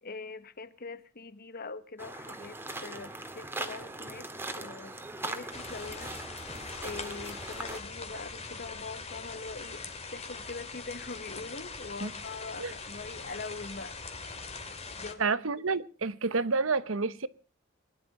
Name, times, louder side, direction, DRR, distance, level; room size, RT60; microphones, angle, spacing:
voice 1, 0.0-4.3 4.6-6.4 6.8-14.0 15.0-15.3, left 3 dB, 50° left, 1.3 m, -43 dB
sound 1, 2.0-7.8, right 2 dB, 10° right, 1.9 m, -40 dB
sound 2, 5.5-15.1, left 4 dB, 30° left, 2.4 m, -42 dB
voice 2, 15.2-17.3, right 4 dB, 80° right, 1.1 m, -29 dB
21.5 x 11.5 x 5.6 m
head